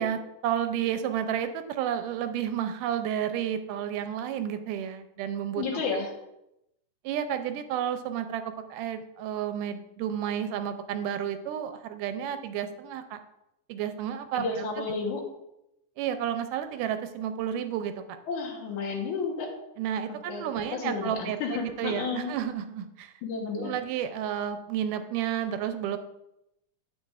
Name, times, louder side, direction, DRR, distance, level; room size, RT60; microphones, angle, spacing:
voice 1, 0.0-5.6 7.0-13.2 13.7-14.6 16.0-17.9 19.8-21.4 21.8-23.1 23.5-26.0, right 9 dB, 85° right, 9 dB, 2.1 m, -31 dB
voice 2, 5.6-6.1 14.3-15.2 18.3-19.5 20.3-22.3 23.2-23.8, left 4 dB, 70° left, 0 dB, 2.5 m, -32 dB
9.4 x 7.8 x 2.5 m, 0.84 s
omnidirectional pair, 3.7 m